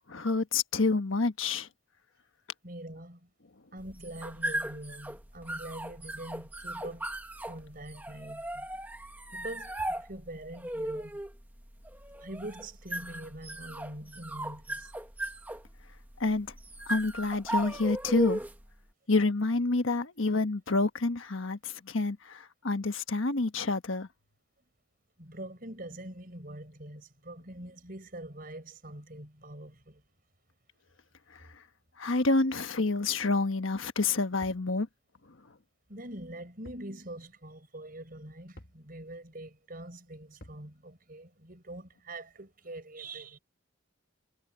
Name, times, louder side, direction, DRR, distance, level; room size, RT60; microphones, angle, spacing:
voice 1, 0.1-1.7 16.2-16.5 16.9-18.4 19.1-24.1 31.3-31.5 32.0-34.9, left 3 dB, 75° left, 1.3 m, -28 dB
voice 2, 2.6-3.3 3.7-7.1 7.5-8.7 9.3-11.2 12.2-14.9 25.2-30.0 35.9-43.4, right 1 dB, 45° right, 5.2 m, -44 dB
sound 1, 3.8-18.7, right 1 dB, 10° right, 1.2 m, -37 dB
sound 2, 34.4-34.7 36.6-36.9 37.2-37.3 38.6-38.8 40.4-40.7, equal, 50° left, 1.9 m, -50 dB
head